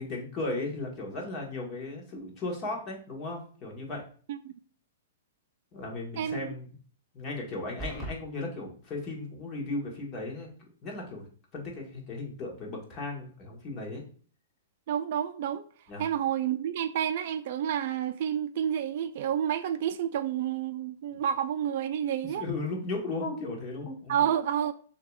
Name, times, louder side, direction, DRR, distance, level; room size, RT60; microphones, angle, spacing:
voice 1, 0.0-4.0 5.7-6.7 7.1-10.5 10.8-11.3 11.5-14.0 15.9-16.1 21.1-21.2 22.4-24.2, left 2 dB, 30° left, 1.4 m, -36 dB
voice 2, 6.2-6.5 14.9-15.7 16.0-22.4 24.1-24.7, right 9 dB, 55° right, 0.4 m, -29 dB
sound 1, 7.8-8.2, right 1 dB, 5° left, 1.0 m, -36 dB
6.5 x 2.9 x 2.4 m
hypercardioid pair, 140°, 0 cm